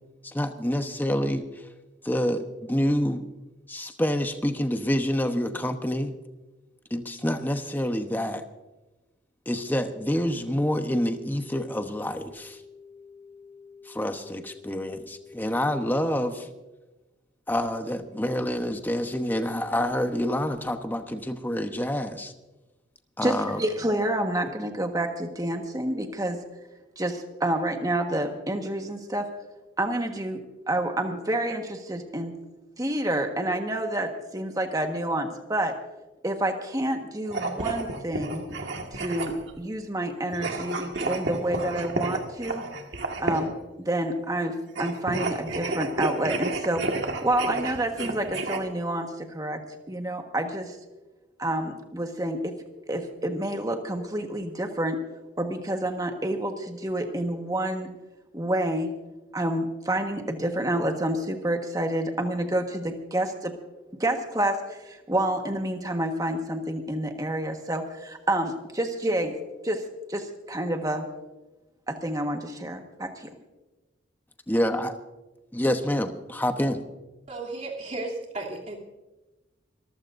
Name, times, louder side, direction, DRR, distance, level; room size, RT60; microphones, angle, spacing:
voice 1, 0.2-1.4 2.0-3.2 3.7-6.1 6.9-8.4 9.5-12.6 13.9-16.5 17.5-22.3 23.2-23.6 74.5-74.9 75.5-76.8, equal, 10° left, 7 dB, 1.0 m, -27 dB
sound 1, 10.0-16.1, left 5 dB, 75° left, 2.1 m, -49 dB
voice 2, 23.2-26.4 27.0-29.3 29.8-30.4 30.7-32.3 32.8-35.7 36.2-38.4 38.9-42.6 43.2-43.5 43.8-46.8 47.2-49.6 49.9-50.8 51.4-52.5 52.9-55.0 55.4-57.9 58.3-58.9 59.3-63.5 64.0-69.4 69.6-69.8 70.1-71.1 71.9-73.3, right 1 dB, 20° right, 4 dB, 1.4 m, -28 dB
sound 2, 37.2-39.6 40.3-43.6 44.7-48.6, right 2 dB, 65° right, 1.8 m, -31 dB
voice 3, 77.3-78.8, right 2 dB, 40° right, -2 dB, 3.0 m, -34 dB
26.0 x 14.5 x 2.6 m, 1.1 s
head